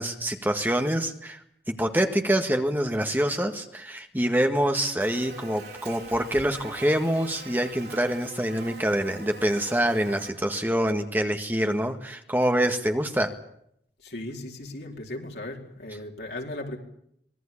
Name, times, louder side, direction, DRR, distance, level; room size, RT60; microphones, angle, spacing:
voice 1, 0.0-13.4, right 1 dB, 10° right, 5 dB, 1.7 m, -26 dB
Buzz, 5.0-10.3, right 3 dB, 75° right, 6.7 m, -43 dB
voice 2, 14.0-16.8, left 1 dB, 75° left, 1 dB, 4.5 m, -37 dB
25.0 x 19.5 x 8.7 m, 0.73 s
head